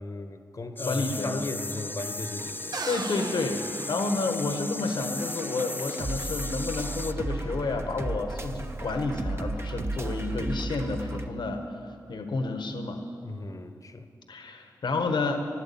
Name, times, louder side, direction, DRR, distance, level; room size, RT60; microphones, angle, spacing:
voice 1, 0.0-2.8 13.2-14.1, left 2 dB, 45° left, 1.1 m, -36 dB
sound 1, 0.8-7.1, left 2 dB, 25° left, 0.5 m, -37 dB
voice 2, 0.9-1.4 2.9-13.0 14.3-15.5, left 3 dB, 75° left, 1.4 m, -30 dB
sound 2, 1.1-11.3, right 2 dB, 35° right, 1.1 m, -36 dB
sound 3, 2.7-4.7, right 3 dB, 55° right, 0.9 m, -37 dB
13.0 x 11.0 x 8.6 m
cardioid pair, 45°, 8 cm